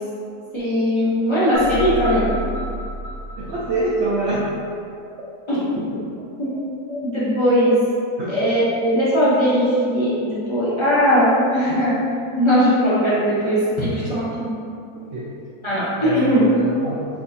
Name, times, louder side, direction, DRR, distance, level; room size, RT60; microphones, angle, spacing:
voice 1, 0.5-2.3 5.5-5.6 6.4-6.5 7.0-7.8 8.3-11.9 12.4-14.5 15.6-16.5, equal, 40° left, -10 dB, 0.4 m, -19 dB
sound 1, 1.5-4.6, equal, 30° right, 0.7 m, -29 dB
voice 2, 3.4-4.5 6.5-6.6 6.9-7.0 8.2-8.4 15.1-15.3 16.0-17.1, right 2 dB, 70° right, -6 dB, 0.6 m, -25 dB
4.5 x 2.5 x 2.6 m, 2.4 s
omnidirectional pair, 1.7 m